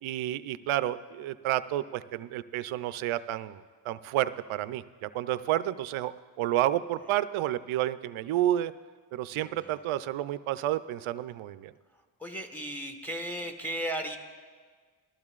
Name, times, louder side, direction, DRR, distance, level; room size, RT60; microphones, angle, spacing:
voice 1, 0.0-6.1 6.4-8.7 9.1-11.7, right 13 dB, 85° right, 14 dB, 0.6 m, -30 dB
voice 2, 9.3-9.8 11.9-14.2, right 1 dB, 5° left, 3 dB, 1.3 m, -36 dB
19.5 x 14.0 x 2.4 m, 1.6 s
cardioid pair, 95°, 47 cm